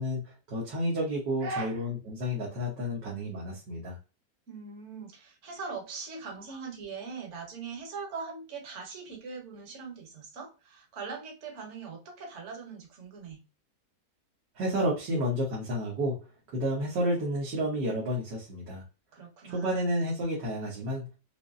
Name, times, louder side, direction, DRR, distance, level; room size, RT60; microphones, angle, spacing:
voice 1, 0.0-4.0 14.6-16.2 16.5-18.8 19.4-21.1, equal, 90° right, -5 dB, 1.9 m, -31 dB
voice 2, 1.4-1.8 4.5-13.4 19.1-19.9, right 4 dB, 50° right, 2 dB, 1.3 m, -41 dB
5.4 x 2.1 x 2.5 m, 0.32 s
omnidirectional pair, 1.8 m